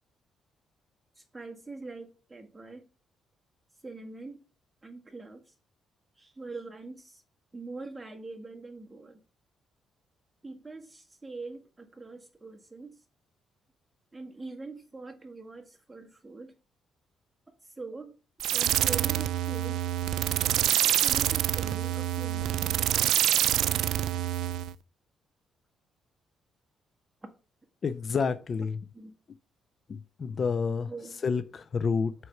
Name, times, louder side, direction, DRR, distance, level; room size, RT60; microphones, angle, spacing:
voice 1, 1.2-2.9 3.8-4.4 4.8-5.4 6.2-7.2 7.5-9.2 10.4-13.0 14.1-16.5 17.8-18.2 18.5-19.8 20.4-23.3 28.9-29.1 30.9-31.2, right 3 dB, 15° right, 1.7 m, -43 dB
sound 1, 18.4-24.7, right 12 dB, 80° right, 0.4 m, -26 dB
voice 2, 27.8-28.8 29.9-30.9 31.2-32.1, left 5 dB, 45° left, 0.5 m, -29 dB
6.4 x 4.5 x 5.7 m
cardioid pair, 90°, 0 cm